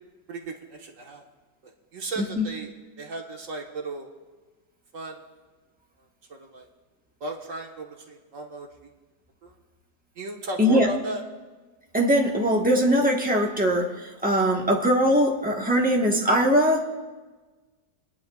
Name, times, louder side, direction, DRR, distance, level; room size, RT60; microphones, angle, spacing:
voice 1, 0.3-1.2 1.6-2.7 3.0-4.1 4.9-5.2 6.3-6.7 7.2-8.7 9.4-9.5 10.2-11.2, right 2 dB, 50° right, 1 dB, 1.6 m, -35 dB
voice 2, 11.9-16.9, equal, 5° right, -1 dB, 1.0 m, -21 dB
28.0 x 10.5 x 2.4 m, 1.3 s
omnidirectional pair, 2.0 m